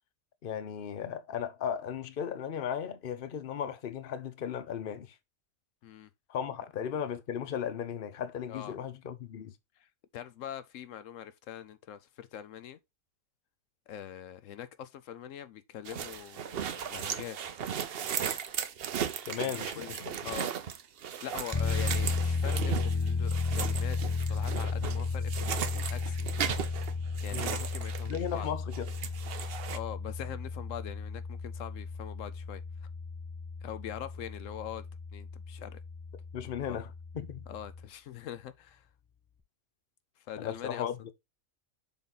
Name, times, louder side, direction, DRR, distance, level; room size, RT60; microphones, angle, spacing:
voice 1, 0.4-5.1 6.3-9.5 19.3-20.4 27.3-27.6 28.0-28.8 36.3-36.9 37.1-37.5 40.4-41.0, left 8 dB, 50° left, 0.9 m, -36 dB
voice 2, 10.1-12.8 13.9-17.4 19.4-20.0 20.2-20.5 21.2-26.3 27.2-28.5 29.7-32.6 33.6-34.9 35.1-35.8 36.4-36.8 37.5-38.9 40.2-40.9, left 10 dB, 80° left, 1.0 m, -43 dB
sound 1, 15.8-28.5 28.7-29.8, right 8 dB, 55° right, 0.8 m, -36 dB
sound 2, 21.5-37.9, left 4 dB, 20° left, 0.7 m, -34 dB
6.9 x 4.1 x 3.9 m
omnidirectional pair, 1.3 m